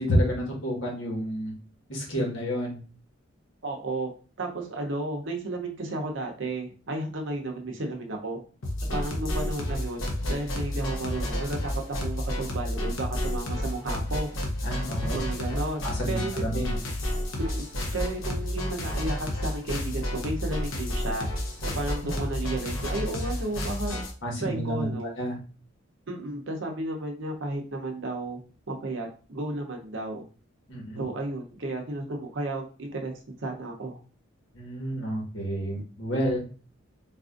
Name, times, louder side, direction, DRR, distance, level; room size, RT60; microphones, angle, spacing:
voice 1, 0.0-1.5 1.9-2.8 14.6-15.2 15.8-16.8 24.2-25.4 30.7-31.0 34.5-36.4, equal, 65° left, -2 dB, 1.4 m, -29 dB
voice 2, 3.6-4.1 4.4-8.4 8.9-10.0 10.3-11.7 12.0-14.3 15.0-16.8 17.4-17.7 17.9-21.3 21.6-24.0 24.4-25.1 26.1-28.4 28.7-30.2 31.0-34.0, right 2 dB, 65° right, 2 dB, 0.8 m, -33 dB
sound 1, 8.6-24.1, left 1 dB, 85° left, 0.9 m, -31 dB
4.0 x 2.6 x 2.5 m, 0.37 s
head